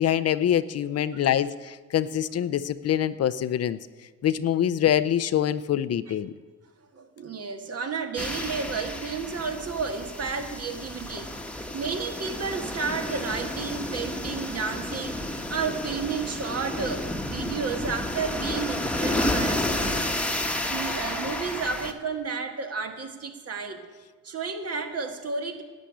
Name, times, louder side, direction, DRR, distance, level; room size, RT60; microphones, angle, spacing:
voice 1, 0.0-3.8 4.2-6.3, left 10 dB, 55° left, 14 dB, 0.6 m, -25 dB
voice 2, 6.9-11.4 11.7-20.2 20.7-23.8 24.2-25.6, right 5 dB, 55° right, 6 dB, 1.8 m, -32 dB
sound 1, 8.2-21.9, left 1 dB, 5° left, 1.2 m, -31 dB
11.5 x 8.2 x 10.0 m, 1.4 s
cardioid pair, 90°, 30 cm